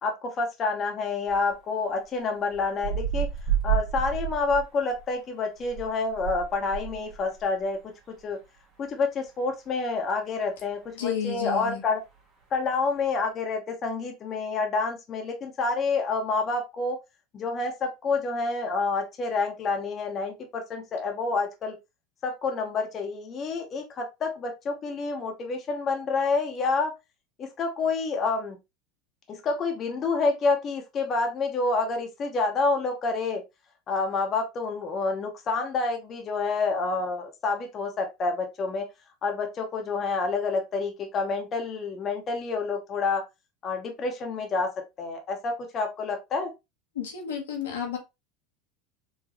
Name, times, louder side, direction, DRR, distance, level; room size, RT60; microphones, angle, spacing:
voice 1, 0.0-3.3 3.6-7.9 8.2-8.4 8.8-12.0 12.5-17.0 17.3-21.8 22.2-26.9 27.4-28.6 29.3-33.4 33.9-38.9 39.2-43.2 43.6-44.7 45.0-46.5, left 4 dB, 40° left, 0.8 m, -28 dB
sound 1, 1.3-1.4 2.5-5.0 5.6-7.5 7.8-7.9, right 10 dB, 40° right, 1.4 m, -30 dB
voice 2, 11.0-11.8 46.9-48.0, left 9 dB, 85° left, 1.1 m, -31 dB
4.0 x 2.2 x 2.9 m
hypercardioid pair, 90°, 0 cm